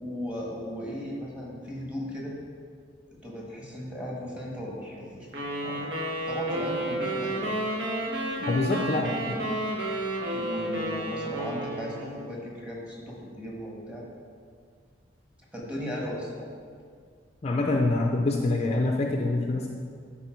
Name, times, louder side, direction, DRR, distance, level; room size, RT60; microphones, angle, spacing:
voice 1, 0.0-2.3 3.2-7.5 8.5-9.5 10.2-14.0 15.5-16.4, equal, 5° right, -4 dB, 1.5 m, -36 dB
sound 1, 5.3-12.3, right 1 dB, 65° right, 1.4 m, -31 dB
voice 2, 8.4-9.1 17.4-19.7, left 2 dB, 35° left, 1 dB, 0.5 m, -25 dB
11.0 x 4.3 x 4.5 m, 2.1 s
head